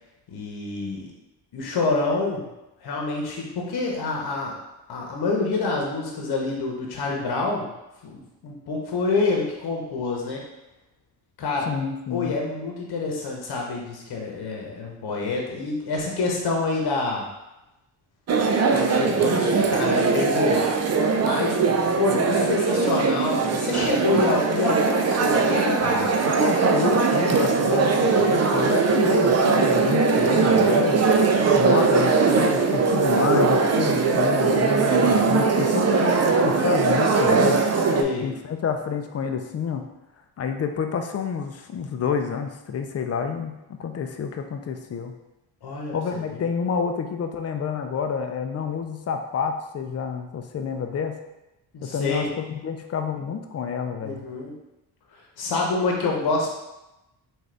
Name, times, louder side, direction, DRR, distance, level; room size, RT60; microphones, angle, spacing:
voice 1, 0.3-1.1 1.5-2.5 2.8-4.5 4.9-7.7 8.0-10.4 11.4-11.7 12.1-17.3 18.7-20.7 21.2-21.6 22.0-26.2 37.9-38.2 45.6-46.4 51.7-52.2 54.0-54.5 55.4-56.5, left 3 dB, 55° left, -1 dB, 1.0 m, -27 dB
voice 2, 11.7-12.4 26.3-31.0 31.5-37.6 38.2-39.9 40.4-45.1 45.9-51.2 51.8-54.2, left 6 dB, 35° left, 6 dB, 0.5 m, -28 dB
sound 1, 18.3-38.0, right 4 dB, 35° right, 0.4 m, -20 dB
3.7 x 2.6 x 3.3 m, 0.96 s
cardioid pair, 75°, 46 cm